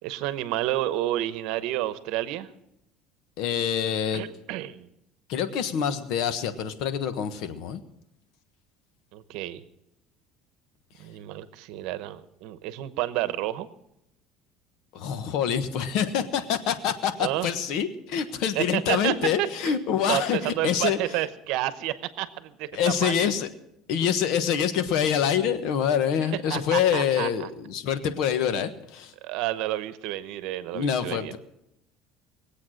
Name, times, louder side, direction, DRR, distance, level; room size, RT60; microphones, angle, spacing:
voice 1, 0.0-2.5 4.1-4.9 9.1-9.6 11.0-13.7 17.2-17.5 18.5-19.8 20.1-23.3 26.5-27.5 29.2-31.3, right 14 dB, 75° right, 13 dB, 0.9 m, -30 dB
voice 2, 3.4-4.3 5.3-7.8 14.9-21.0 22.7-23.5 23.9-29.1 30.7-31.4, left 8 dB, 70° left, 11 dB, 1.3 m, -26 dB
21.0 x 8.3 x 6.4 m, 0.81 s
cardioid pair, 130°, 0 cm